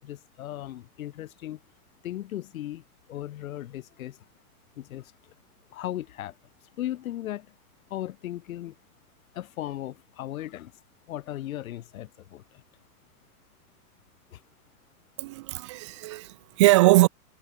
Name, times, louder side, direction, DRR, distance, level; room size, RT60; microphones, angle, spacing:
voice 1, 0.0-1.6 2.0-4.2 4.8-5.3 5.7-6.4 6.8-7.6 7.9-8.8 9.3-10.7 11.1-12.6 14.3-14.4, left 13 dB, 60° left, 4.1 m, -37 dB
voice 2, 15.2-17.1, right 19 dB, 20° right, 0.5 m, -21 dB
hypercardioid pair, 155°, 47 cm